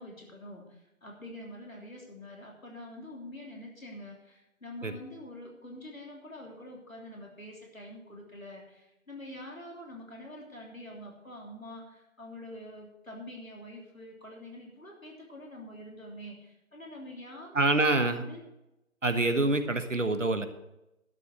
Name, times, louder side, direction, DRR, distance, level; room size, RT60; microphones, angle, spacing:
voice 1, 0.0-18.4, left 1 dB, 75° left, -1 dB, 3.3 m, -46 dB
voice 2, 17.5-18.2 19.0-20.5, right 2 dB, 65° right, 9 dB, 1.3 m, -26 dB
12.0 x 7.1 x 6.3 m, 0.91 s
figure-of-eight pair, 165°, 41 cm